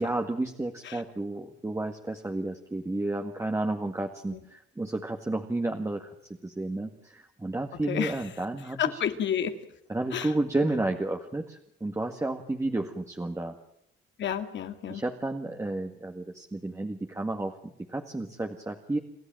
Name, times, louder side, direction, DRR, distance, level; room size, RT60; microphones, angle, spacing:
voice 1, 0.0-6.1 6.4-9.0 9.9-13.6 14.9-19.0, right 2 dB, 15° right, 3 dB, 1.9 m, -31 dB
voice 2, 7.9-8.2 8.8-9.5 10.1-10.3 14.2-15.0, left 9 dB, 70° left, 8 dB, 2.4 m, -30 dB
29.5 x 13.0 x 9.1 m, 0.74 s
cardioid pair, 90°, 20 cm